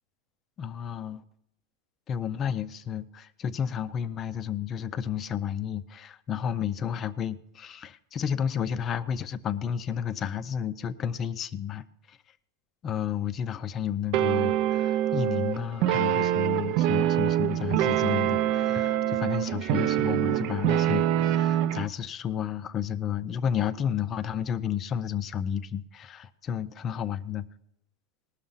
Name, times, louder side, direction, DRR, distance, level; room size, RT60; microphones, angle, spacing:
voice 1, 0.6-1.2 2.1-12.2 12.8-27.5, left 8 dB, 25° left, 15 dB, 0.5 m, -32 dB
sound 1, 14.1-21.9, right 12 dB, 50° right, 0.5 m, -25 dB
19.0 x 6.5 x 5.6 m, 0.79 s
supercardioid pair, 155°, 0 cm